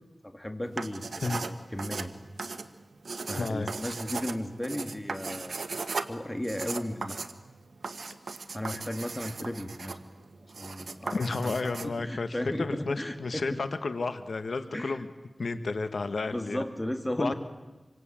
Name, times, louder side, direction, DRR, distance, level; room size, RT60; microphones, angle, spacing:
voice 1, 0.2-2.1 3.3-5.6 6.1-7.2 8.5-10.0 10.6-13.6 14.7-15.0 16.3-17.3, left 1 dB, 15° left, 6 dB, 3.0 m, -35 dB
sound 1, 0.7-11.9, right 4 dB, 90° right, 1.5 m, -37 dB
voice 2, 3.4-3.7 11.1-15.1 15.4-16.6 17.2-17.3, left 3 dB, 80° left, 10 dB, 1.4 m, -32 dB
27.5 x 24.0 x 8.8 m, 1.1 s
wide cardioid pair, 50°, 0 cm